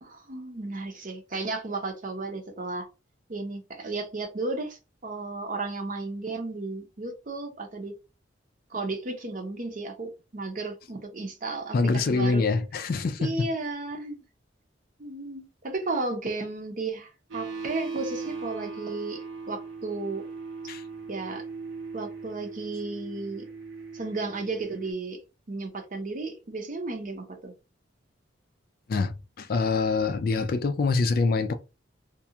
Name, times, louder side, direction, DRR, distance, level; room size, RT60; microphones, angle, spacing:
voice 1, 0.0-2.9 3.3-7.9 8.7-12.5 13.2-14.2 15.0-20.2 21.1-21.4 21.9-23.4 23.9-25.2 25.5-27.5, right 3 dB, 45° right, 0.7 m, -34 dB
voice 2, 11.7-13.3 20.7-20.8 28.9-31.5, left 4 dB, 50° left, 0.4 m, -25 dB
sound 1, 17.3-24.9, right 4 dB, 90° right, 0.9 m, -39 dB
2.5 x 2.3 x 2.8 m
head